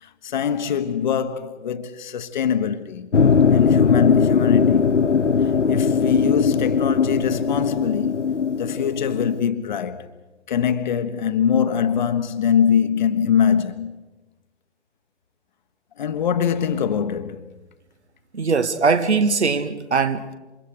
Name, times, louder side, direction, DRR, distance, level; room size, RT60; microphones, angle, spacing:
voice 1, 0.0-3.1 3.5-4.9 5.4-8.2 8.6-10.1 10.5-13.9 16.0-17.5, left 8 dB, 40° left, 1.3 m, -23 dB
sound 1, 3.1-9.4, left 6 dB, 80° left, 0.9 m, -19 dB
voice 2, 18.3-20.4, right 4 dB, 65° right, 1.6 m, -21 dB
28.5 x 25.5 x 5.1 m
figure-of-eight pair, 130°, 36 cm